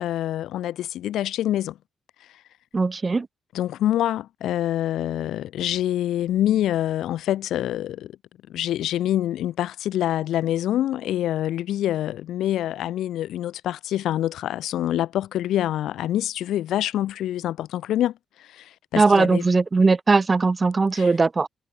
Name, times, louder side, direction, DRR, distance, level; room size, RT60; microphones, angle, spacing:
voice 1, 0.0-1.8 3.5-8.1 8.5-19.4 20.9-21.1, left 12 dB, 90° left, 6.9 m, -26 dB
voice 2, 2.7-3.3 19.0-21.5, right 4 dB, 20° right, 3.9 m, -19 dB
cardioid pair, 155°, 0 cm